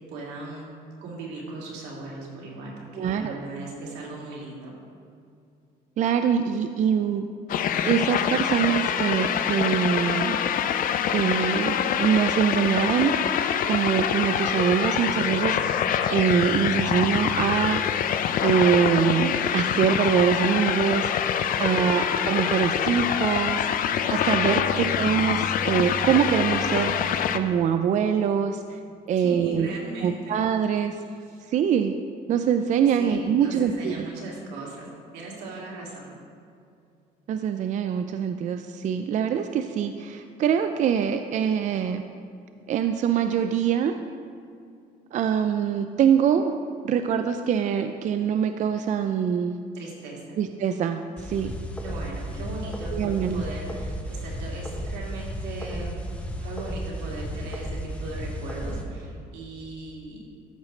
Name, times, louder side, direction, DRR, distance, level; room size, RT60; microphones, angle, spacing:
voice 1, 0.1-0.7 1.0-4.8 21.5-22.0 29.2-30.4 31.3-31.4 33.0-34.9 35.1-36.1 49.7-50.4 51.8-56.0 56.4-60.2, right 2 dB, 85° right, -3 dB, 2.3 m, -38 dB
voice 2, 3.0-3.4 6.0-7.3 7.8-10.4 11.1-15.7 16.1-17.8 18.4-28.8 29.1-29.7 30.0-30.9 31.5-31.9 32.3-34.0 37.3-42.0 42.7-43.9 45.1-46.5 46.8-49.6 50.4-51.5 52.9-53.4, right 8 dB, 45° right, 8 dB, 0.4 m, -24 dB
sound 1, 7.5-27.4, left 9 dB, 55° left, 0.5 m, -25 dB
sound 2, 51.2-58.8, equal, 5° left, 1.0 m, -34 dB
13.0 x 6.2 x 3.2 m, 2.4 s
cardioid pair, 110°, 17 cm